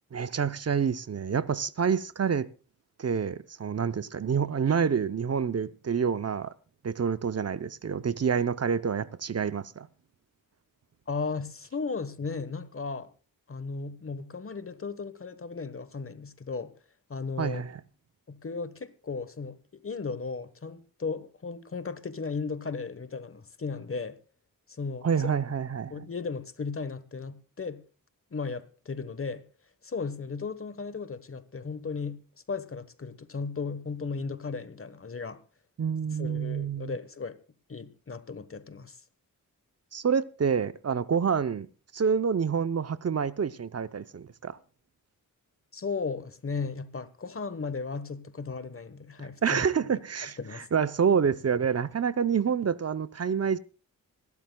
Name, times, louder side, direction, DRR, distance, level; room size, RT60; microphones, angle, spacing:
voice 1, 0.1-2.5 3.0-6.5 6.8-9.9 17.4-17.8 25.0-26.1 35.8-37.0 39.9-41.7 41.9-44.6 49.4-53.6, right 6 dB, 45° right, 0.7 m, -28 dB
voice 2, 11.1-13.1 13.5-16.7 17.1-17.7 18.3-24.2 24.8-25.3 25.9-27.8 28.3-29.4 29.8-32.2 32.5-35.4 36.2-37.4 37.7-39.0 45.7-49.6 50.4-50.7, left 4 dB, 40° left, 1.2 m, -35 dB
25.5 x 12.0 x 2.3 m
cardioid pair, 70°, 35 cm